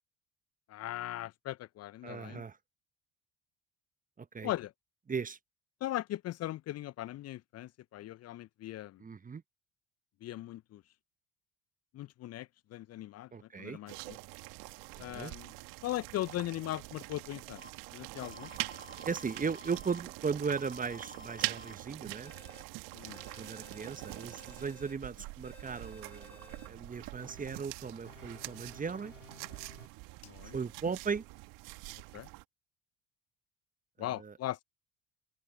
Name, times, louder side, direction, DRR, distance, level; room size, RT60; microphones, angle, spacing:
voice 1, 0.7-2.4 4.4-4.7 5.8-9.0 10.2-10.8 11.9-13.3 13.6-14.2 15.0-15.5 15.8-17.6 17.9-18.5 22.9-23.2 30.2-30.5 32.1-32.3 34.0-34.6, left 14 dB, 45° left, 0.9 m, -39 dB
voice 2, 2.0-2.6 4.2-4.5 5.1-5.4 9.0-9.4 13.3-13.8 14.9-15.3 19.0-22.3 23.4-29.1 30.4-31.2 34.0-34.3, right 5 dB, 20° right, 1.4 m, -37 dB
sound 1, 13.9-32.4, right 26 dB, 60° right, 2.4 m, -44 dB
sound 2, 17.6-17.7 18.2-20.0 20.5-21.8 22.3-22.6 23.1-24.9 25.4-26.7 27.2-27.6 28.1-29.9, left 3 dB, 90° left, 2.1 m, -54 dB
figure-of-eight pair, 55°, 36 cm